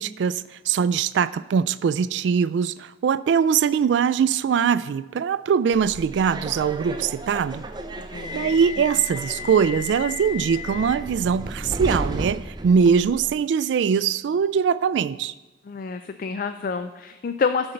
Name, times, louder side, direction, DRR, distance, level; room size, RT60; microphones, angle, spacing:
voice 1, 0.0-7.6 8.3-15.3, right 6 dB, 80° right, 16 dB, 0.3 m, -22 dB
Subway metro underground, 5.7-13.3, equal, 25° right, 0.5 m, -33 dB
voice 2, 8.0-8.5 15.7-17.7, left 5 dB, 50° left, 9 dB, 0.4 m, -28 dB
11.5 x 4.4 x 6.5 m, 1.1 s
head